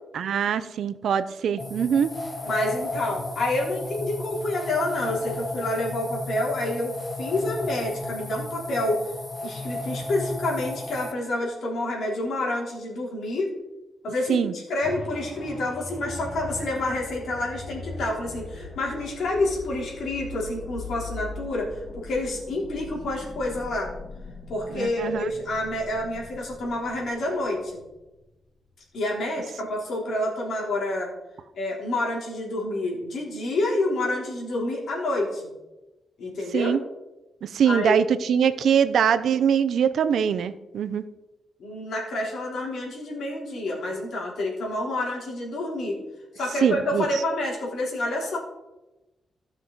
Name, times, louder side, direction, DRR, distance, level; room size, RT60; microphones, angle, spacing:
voice 1, 0.1-2.1 14.3-14.5 24.7-25.3 36.5-36.8 37.4-41.0 46.6-47.1, right 8 dB, 75° right, 13 dB, 0.6 m, -23 dB
sound 1, 1.6-11.1, left 2 dB, 15° left, 0.8 m, -34 dB
voice 2, 2.4-6.9 7.2-9.1 9.4-13.5 14.0-21.7 22.0-23.9 24.5-27.8 28.9-31.1 31.6-35.5 36.2-36.8 37.6-38.0 41.6-46.0 46.4-48.4, left 2 dB, 70° left, -2 dB, 3.5 m, -28 dB
sound 2, 14.8-28.5 29.0-29.1, left 3 dB, 35° left, 1.4 m, -40 dB
15.5 x 6.1 x 4.0 m, 1.0 s
wide cardioid pair, 130°, 0 cm